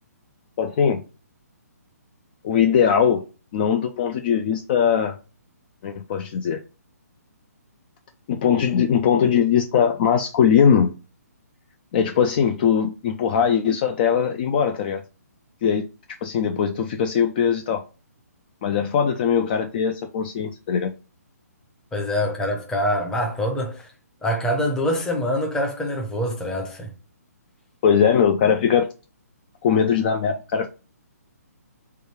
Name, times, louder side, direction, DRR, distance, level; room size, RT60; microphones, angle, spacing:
voice 1, 0.6-1.0 2.4-3.3 3.5-5.2 5.8-6.6 8.3-10.9 11.9-15.0 15.6-15.9 16.2-17.8 18.6-20.9 27.8-28.9 29.6-30.7, left 7 dB, 35° left, 0.3 m, -20 dB
voice 2, 21.9-23.9 24.2-26.9, equal, 5° left, 0.6 m, -25 dB
3.3 x 2.3 x 4.4 m
figure-of-eight pair, 140°, 9 cm